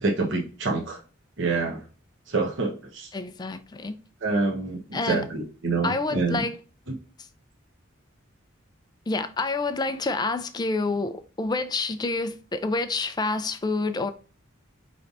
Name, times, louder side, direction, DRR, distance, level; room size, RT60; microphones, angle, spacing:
voice 1, 0.0-1.0 1.4-1.8 2.3-3.1 4.2-6.4, right 3 dB, 60° right, 1.0 m, -27 dB
voice 2, 3.1-4.0 4.9-5.2 5.8-6.6 9.1-14.1, left 3 dB, 20° left, 0.3 m, -28 dB
5.2 x 3.3 x 2.5 m
head